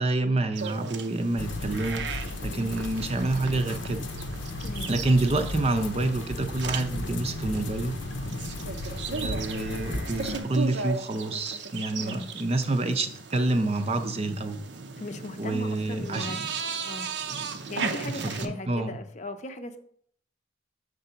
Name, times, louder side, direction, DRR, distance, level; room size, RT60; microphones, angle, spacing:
voice 1, 0.0-4.1 4.9-8.0 9.1-14.6 15.4-16.5 18.2-18.9, right 2 dB, 35° right, 7 dB, 0.6 m, -28 dB
sound 1, 0.5-18.5, right 5 dB, 70° right, 0.7 m, -37 dB
sound 2, 1.4-10.4, left 2 dB, 85° left, 0.7 m, -35 dB
voice 2, 4.6-4.9 12.0-12.3 15.0-16.4 16.8-17.1 17.7-19.8, left 2 dB, 40° left, 8 dB, 0.6 m, -38 dB
6.8 x 3.9 x 5.6 m, 0.63 s
head